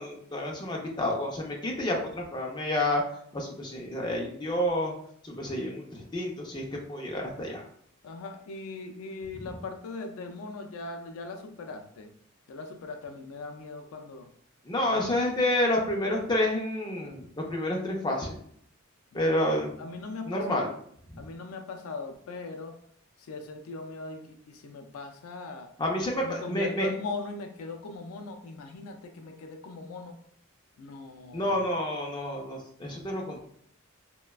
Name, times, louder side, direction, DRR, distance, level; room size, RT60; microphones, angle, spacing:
voice 1, 0.0-3.0 3.3-4.9 5.2-7.6 14.7-18.3 19.1-19.7 20.3-20.7 21.1-21.2 25.8-26.9 31.3-33.4, left 1 dB, 20° left, -1 dB, 0.4 m, -29 dB
voice 2, 8.0-12.1 12.5-14.3 14.9-15.1 19.1-19.5 19.8-20.8 21.2-22.8 23.2-25.7 26.2-30.2 30.8-31.6, left 3 dB, 85° left, 5 dB, 0.4 m, -39 dB
3.1 x 2.1 x 2.3 m, 0.64 s
head